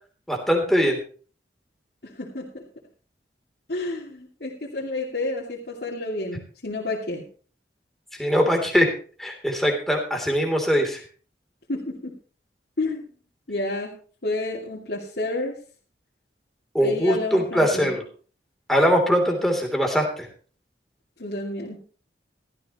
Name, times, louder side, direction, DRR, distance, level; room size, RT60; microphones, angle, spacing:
voice 1, 0.3-1.0 8.2-8.9 9.2-11.0 16.7-18.0 18.7-20.3, equal, ahead, 2 dB, 3.2 m, -21 dB
voice 2, 2.0-2.6 3.7-7.2 11.7-12.1 12.8-13.0 13.5-13.9 14.2-15.6 16.8-17.9 21.2-21.8, left 2 dB, 65° left, -5 dB, 2.5 m, -30 dB
16.0 x 13.5 x 3.0 m, 0.40 s
head